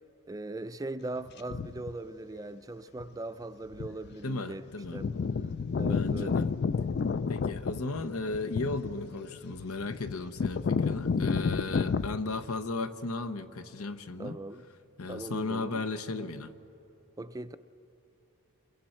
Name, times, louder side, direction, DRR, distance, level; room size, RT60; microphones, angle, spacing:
voice 1, 0.3-4.6 4.9-5.1 5.7-6.4 14.2-14.6 15.1-15.8 17.2-17.6, right 2 dB, 15° right, 0.4 m, -39 dB
sound 1, 1.5-1.9 3.0-3.1 3.7-4.1 4.4-4.5 4.7-12.2, left 5 dB, 50° left, 0.4 m, -30 dB
voice 2, 4.2-5.0 5.9-6.5 7.3-14.4 15.0-16.5, left 3 dB, 85° left, 0.9 m, -35 dB
27.5 x 22.0 x 4.4 m
head